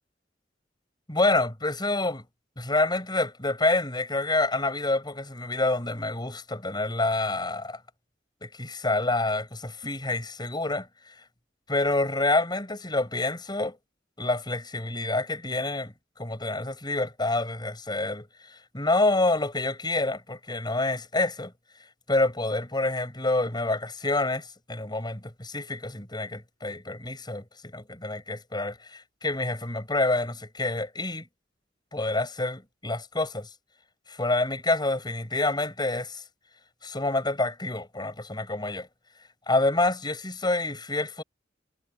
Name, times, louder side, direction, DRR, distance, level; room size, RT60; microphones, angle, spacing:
voice 1, 1.1-2.2 2.6-7.8 8.4-10.9 11.7-13.8 14.2-15.9 16.2-18.3 18.7-21.5 22.1-27.4 27.7-31.3 31.9-33.5 34.1-36.2 36.8-38.9 39.5-41.2, left 2 dB, 25° left, 5.5 m, -27 dB
head